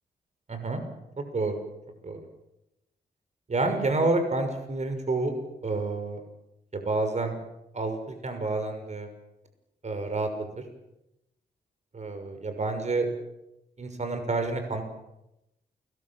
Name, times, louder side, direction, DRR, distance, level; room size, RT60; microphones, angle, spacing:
voice 1, 0.5-0.8 1.3-1.6 2.0-2.2 3.5-5.3 5.6-6.2 6.7-7.3 7.7-9.1 9.8-10.3 11.9-13.1 13.8-14.8, right 3 dB, 45° right, 6 dB, 6.1 m, -28 dB
29.5 x 22.0 x 7.4 m, 0.90 s
cardioid pair, 60°, 17 cm